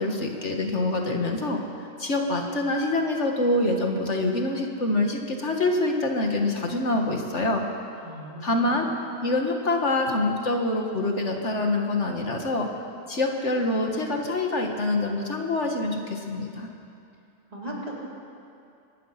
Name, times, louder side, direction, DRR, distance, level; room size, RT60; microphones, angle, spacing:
voice 1, 0.0-1.6 2.0-7.6 8.4-8.9 9.2-12.7 13.1-16.7, left 2 dB, 65° left, 2 dB, 2.0 m, -25 dB
voice 2, 8.0-8.8 17.5-17.9, equal, 30° right, -5 dB, 4.0 m, -37 dB
24.5 x 19.0 x 5.9 m, 2.6 s
omnidirectional pair, 1.3 m